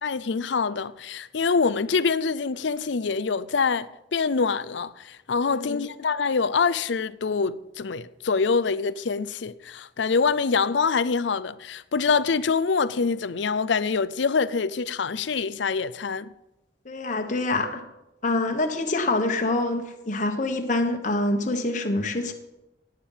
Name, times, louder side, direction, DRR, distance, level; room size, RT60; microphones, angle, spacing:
voice 1, 0.0-16.3, left 5 dB, 75° left, 0.5 m, -25 dB
voice 2, 5.5-5.8 16.8-17.8 18.2-22.3, left 2 dB, 40° left, 1.3 m, -26 dB
17.5 x 8.9 x 5.6 m
head